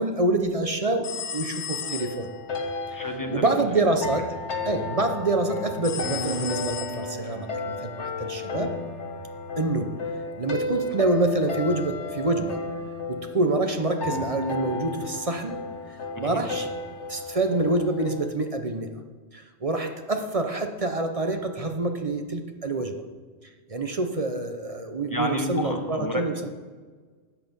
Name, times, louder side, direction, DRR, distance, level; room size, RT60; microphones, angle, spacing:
voice 1, 0.0-2.3 3.3-4.4 4.6-8.8 9.6-10.0 10.4-12.6 13.1-15.6 16.2-16.7 17.1-18.9 19.3-23.0 23.7-26.5, right 2 dB, 35° right, 6 dB, 0.8 m, -26 dB
sound 1, 1.0-2.4 5.8-7.4, left 8 dB, 45° left, 0.4 m, -35 dB
sound 2, 1.8-18.3, left 3 dB, 85° left, 1.5 m, -33 dB
voice 2, 2.9-3.9 16.2-16.4 25.1-26.2, left 1 dB, 20° left, 3 dB, 1.2 m, -31 dB
13.0 x 8.5 x 5.4 m, 1.4 s
omnidirectional pair, 1.2 m